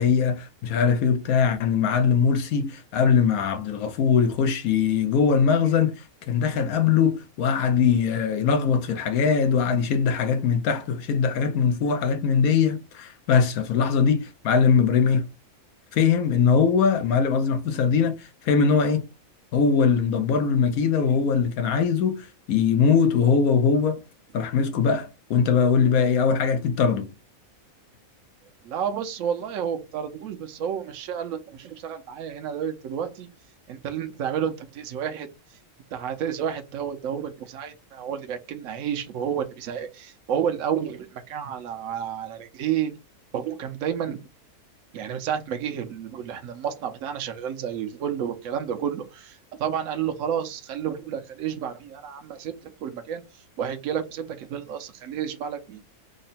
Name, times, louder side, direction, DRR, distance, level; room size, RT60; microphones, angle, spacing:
voice 1, 0.0-15.3 15.9-19.1 19.5-24.0 24.3-27.1, left 6 dB, 85° left, 1.1 m, -21 dB
voice 2, 28.6-33.3 33.7-35.3 35.9-42.9 43.3-44.2 44.9-53.2 53.6-55.8, right 8 dB, 70° right, 1.0 m, -30 dB
3.7 x 2.1 x 4.0 m
omnidirectional pair, 1.5 m